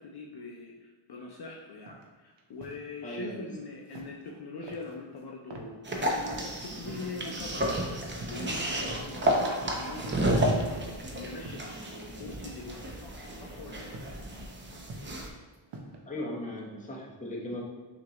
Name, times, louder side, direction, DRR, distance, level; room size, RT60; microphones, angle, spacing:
voice 1, 0.0-14.0, left 3 dB, 50° left, 0 dB, 0.6 m, -43 dB
sound 1, 1.9-2.0 2.4-2.8 3.9-4.3 4.6-5.2 5.5-5.7 6.1-6.4 6.8-7.1 7.5-7.8 8.1-8.8 9.0-9.6 9.9-11.0 11.4-11.8 12.5-12.9 13.9-14.2 14.6-15.2 15.5-16.0, right 2 dB, 60° right, 0.8 m, -47 dB
voice 2, 3.0-3.6 16.1-17.6, left 1 dB, 15° left, -3 dB, 0.9 m, -37 dB
sound 2, 5.8-15.3, right 1 dB, 25° right, 0.6 m, -32 dB
5.9 x 2.6 x 2.9 m, 1.4 s
cardioid pair, 100°, 49 cm